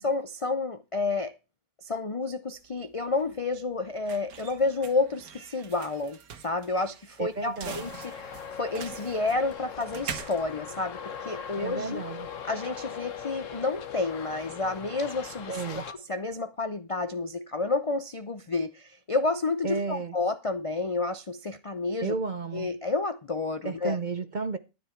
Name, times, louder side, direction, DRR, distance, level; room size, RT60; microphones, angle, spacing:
voice 1, 0.0-1.4 1.8-12.0 12.4-22.1 22.5-24.0, left 3 dB, 45° left, 0.4 m, -30 dB
sound 1, 2.5-11.6, right 7 dB, 80° right, 1.6 m, -44 dB
voice 2, 7.2-7.8 11.6-12.3 15.5-15.8 19.6-20.2 22.0-22.7 23.6-24.6, right 4 dB, 45° right, 0.6 m, -32 dB
Traffic noise roadway noise, 7.7-15.9, left 7 dB, 60° left, 1.4 m, -40 dB
12.5 x 10.5 x 4.5 m
omnidirectional pair, 1.5 m